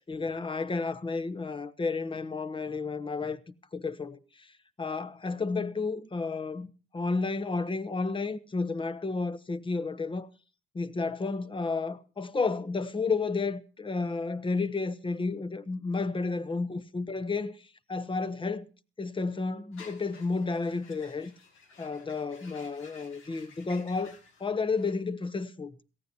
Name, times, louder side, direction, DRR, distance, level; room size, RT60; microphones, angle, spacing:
voice 1, 0.0-3.4 3.7-4.5 4.8-6.7 6.9-10.3 10.7-17.6 17.9-18.7 19.0-21.3 21.8-25.7, left 4 dB, 25° left, 0.9 m, -31 dB
sound 1, 19.7-24.9, left 5 dB, 85° left, 2.3 m, -54 dB
17.5 x 15.0 x 2.8 m
cardioid pair, 90°, 20 cm